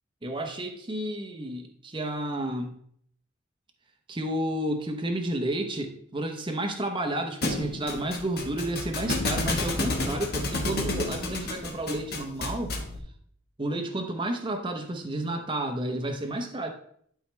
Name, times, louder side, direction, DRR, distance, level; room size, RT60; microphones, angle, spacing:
voice 1, 0.2-2.8 4.1-12.8 13.6-16.7, right 1 dB, 25° right, 3 dB, 0.9 m, -31 dB
Thump thud, 7.4-13.0, left 2 dB, 55° left, 1.4 m, -31 dB
11.5 x 4.8 x 3.3 m, 0.64 s
head